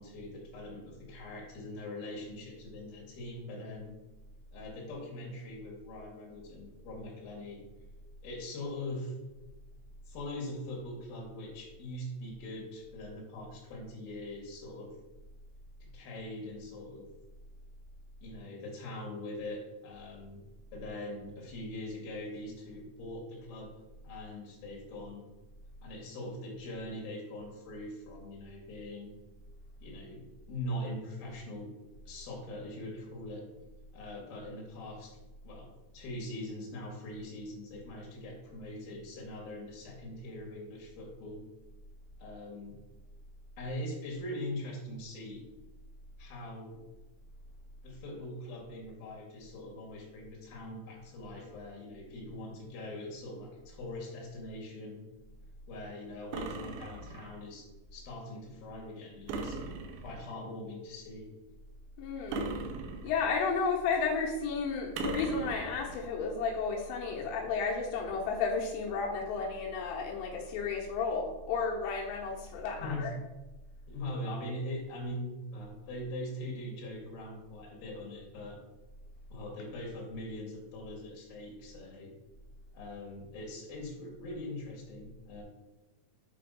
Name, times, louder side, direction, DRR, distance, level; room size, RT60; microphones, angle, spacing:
voice 1, 0.0-4.0 4.5-7.6 8.2-9.1 10.1-14.9 15.8-17.1 18.2-20.4 20.7-23.7 24.0-25.3 25.8-29.1 29.8-30.2 30.5-31.7 32.1-33.4 33.9-35.1 35.4-41.4 42.2-42.8 43.6-45.4 46.2-46.8 47.8-55.1 55.7-59.7 60.0-61.3 72.7-73.1 73.9-78.6 79.3-82.1 82.7-85.4, left 1 dB, 55° left, -2 dB, 3.4 m, -42 dB
sound 1, 56.3-57.4 59.3-60.4 62.3-63.4 65.0-66.0, right 3 dB, 90° right, 3.5 m, -38 dB
voice 2, 62.0-62.4 63.0-73.1, left 5 dB, 85° left, -1 dB, 3.4 m, -32 dB
8.7 x 3.4 x 5.2 m, 1.1 s
omnidirectional pair, 5.7 m